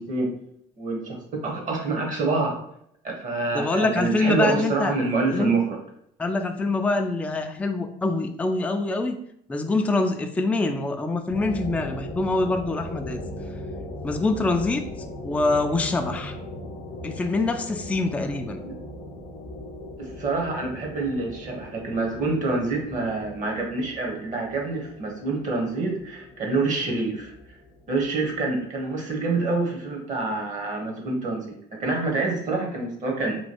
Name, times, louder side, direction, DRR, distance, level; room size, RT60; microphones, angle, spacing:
voice 1, 0.8-2.5 3.0-5.8 18.6-18.8 20.0-27.3 27.9-33.4, right 3 dB, 45° right, 1 dB, 1.0 m, -27 dB
voice 2, 3.5-4.9 5.3-5.5 6.2-9.2 9.5-13.2 14.0-14.8 15.2-16.3 17.0-18.6, left 2 dB, 10° left, 5 dB, 0.3 m, -25 dB
sound 1, 11.3-28.7, left 1 dB, 45° left, 0.6 m, -39 dB
3.0 x 2.2 x 2.9 m, 0.71 s
supercardioid pair, 80°, 17 cm